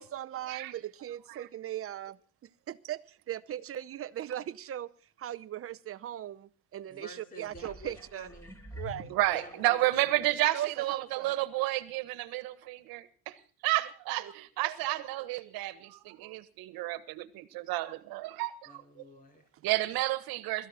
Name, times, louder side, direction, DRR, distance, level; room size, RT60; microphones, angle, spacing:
voice 1, 0.0-4.9 5.2-8.3 8.8-9.1 10.5-11.3 14.2-14.3, right 12 dB, 40° right, 0.8 m, -39 dB
voice 2, 6.9-10.4 18.6-19.5, left 1 dB, 25° left, 3.5 m, -51 dB
sound 1, 7.5-10.1 10.7-10.8, left 1 dB, 10° left, 4.3 m, -47 dB
voice 3, 9.1-13.3 13.6-18.8 19.6-20.7, right 17 dB, 75° right, 1.6 m, -31 dB
21.5 x 14.5 x 4.3 m
cardioid pair, 130°, 36 cm